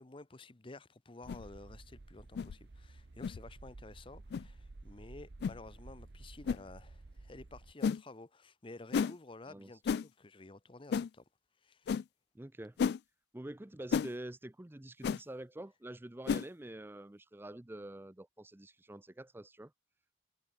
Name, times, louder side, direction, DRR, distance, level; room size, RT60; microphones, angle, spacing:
voice 1, 0.0-11.2 11.6-11.9, left 2 dB, 30° left, 0.8 m, -52 dB
sound 1, 1.2-7.7, right 2 dB, 70° right, 0.8 m, -53 dB
sound 2, 1.3-1.5 2.4-2.5 3.2-3.4 4.3-4.5 5.4-5.6 6.5-6.6 7.8-8.0 8.9-9.1 9.9-10.1 10.9-11.1 11.9-12.0 12.8-13.0 13.9-14.1 15.0-15.2 16.3-16.5, left 6 dB, 65° left, 0.3 m, -32 dB
voice 2, 12.3-12.8 13.3-19.7, right 1 dB, 10° right, 0.5 m, -46 dB
head